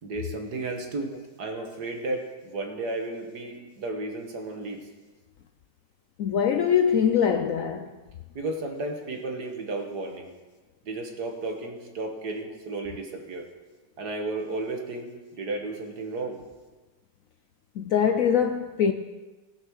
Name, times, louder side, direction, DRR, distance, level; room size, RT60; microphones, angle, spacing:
voice 1, 0.0-1.1 1.4-4.9 8.4-10.3 10.8-13.5 14.0-16.4, right 2 dB, 65° right, 2.1 m, -33 dB
voice 2, 6.2-8.0 17.8-18.9, left 8 dB, 65° left, 0.8 m, -23 dB
18.0 x 6.5 x 6.3 m
omnidirectional pair, 1.9 m